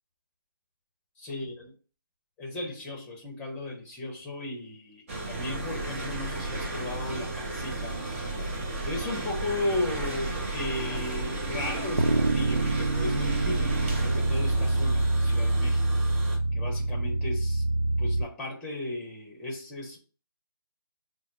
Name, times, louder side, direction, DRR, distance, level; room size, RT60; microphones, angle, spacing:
voice 1, 1.2-1.7 2.4-8.6 8.8-16.0 16.5-17.6 18.0-20.0, left 2 dB, 10° left, 0.8 m, -35 dB
sound 1, 5.1-16.4, right 2 dB, 35° right, 0.8 m, -34 dB
sound 2, 12.0-18.2, right 2 dB, 90° right, 0.7 m, -26 dB
5.6 x 2.0 x 2.7 m
figure-of-eight pair, 155°, 12 cm